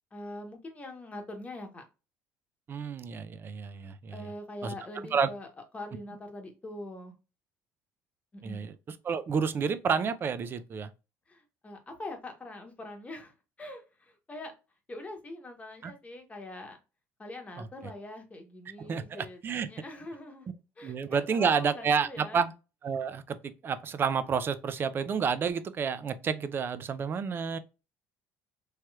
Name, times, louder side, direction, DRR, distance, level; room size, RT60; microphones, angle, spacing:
voice 1, 0.1-1.8 4.1-5.5 5.7-7.1 8.3-8.6 11.3-14.5 14.9-16.8 17.2-20.5 20.8-22.5, left 2 dB, 20° left, 1.0 m, -43 dB
voice 2, 2.7-4.2 4.6-4.7 5.1-5.3 8.4-8.7 9.0-10.9 15.8-15.9 17.6-17.7 18.9-19.7 20.8-22.5 22.8-27.6, right 6 dB, 35° right, 0.4 m, -30 dB
3.2 x 2.9 x 2.3 m
supercardioid pair, 100°, 6 cm